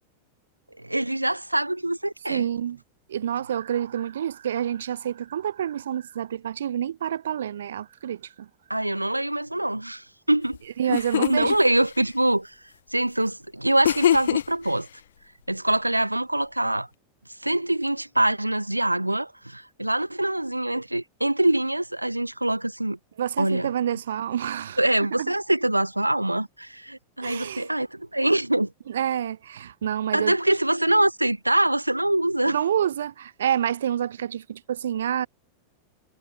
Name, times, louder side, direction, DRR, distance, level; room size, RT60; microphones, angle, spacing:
voice 1, 0.8-2.5 8.7-10.6 10.9-11.0 11.3-12.5 12.9-14.9 15.5-16.9 17.4-23.0 23.4-24.0 24.8-28.7 30.1-32.6, right 1 dB, 85° right, 0.9 m, -24 dB
voice 2, 2.3-2.8 3.1-8.5 10.8-11.6 23.2-24.8 25.2-25.3 27.2-27.7 28.9-30.3 32.5-35.3, right 9 dB, 65° right, 0.6 m, -28 dB
sound 1, 10.5-10.6 10.9-11.6 13.8-14.7, left 10 dB, 65° left, 0.3 m, -23 dB
figure-of-eight pair, 90°, 0 cm